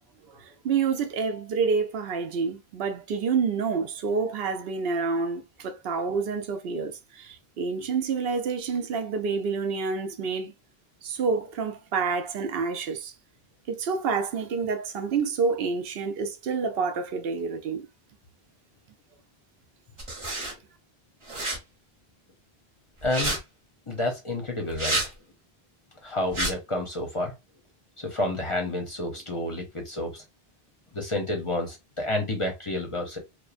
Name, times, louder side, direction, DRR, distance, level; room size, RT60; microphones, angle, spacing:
voice 1, 0.3-10.5 11.0-13.1 13.7-17.9, right 5 dB, 70° right, 0.8 m, -28 dB
sound 1, 20.0-20.5 21.3-21.6 23.0-23.4 24.7-25.1 26.3-26.5, right 2 dB, 30° right, 0.9 m, -29 dB
voice 2, 23.0-23.4 23.9-25.0 26.0-27.4 28.0-30.2 30.9-33.2, left 1 dB, 35° left, 0.6 m, -30 dB
2.9 x 2.1 x 2.4 m
omnidirectional pair, 1.0 m